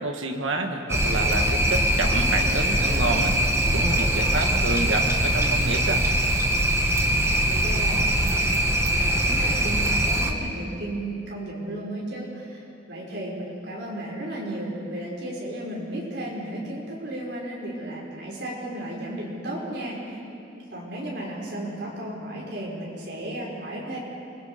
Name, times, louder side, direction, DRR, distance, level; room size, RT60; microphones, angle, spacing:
voice 1, 0.0-3.3 3.7-6.0, right 2 dB, 85° right, 3 dB, 1.6 m, -29 dB
sound 1, 0.9-10.3, right 1 dB, 15° right, 1.3 m, -22 dB
voice 2, 7.1-20.2 20.5-24.0, right 1 dB, 60° right, -4 dB, 5.8 m, -34 dB
28.0 x 22.5 x 5.2 m, 2.6 s
head